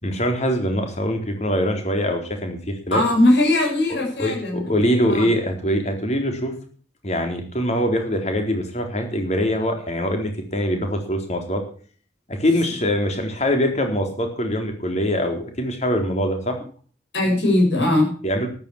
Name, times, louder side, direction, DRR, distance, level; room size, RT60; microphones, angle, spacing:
voice 1, 0.0-3.0 4.2-6.5 7.0-11.6 12.3-16.6 18.2-18.5, equal, 40° left, 5 dB, 4.0 m, -23 dB
voice 2, 2.9-4.6 5.1-5.3 17.1-18.1, left 1 dB, 85° left, 0 dB, 7.5 m, -19 dB
13.5 x 11.5 x 7.3 m, 0.43 s
head